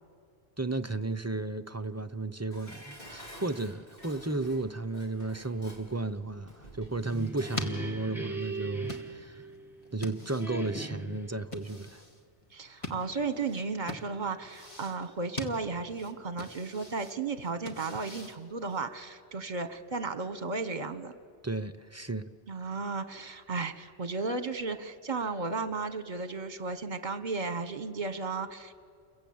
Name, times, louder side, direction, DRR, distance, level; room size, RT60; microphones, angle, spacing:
voice 1, 0.6-9.5 9.9-12.0 21.4-22.3 22.6-22.7, right 3 dB, 20° right, 0.6 m, -34 dB
Dishes pots and pans, 2.5-7.8 8.1-8.2, equal, 55° left, 3.9 m, -50 dB
sound 1, 6.7-19.0, left 2 dB, 30° left, 2.0 m, -44 dB
sound 2, 7.0-9.9 10.4-11.4, right 2 dB, ahead, 1.3 m, -39 dB
voice 2, 12.5-21.1 22.5-28.8, right 4 dB, 45° right, 1.3 m, -34 dB
29.5 x 22.5 x 8.7 m
omnidirectional pair, 1.1 m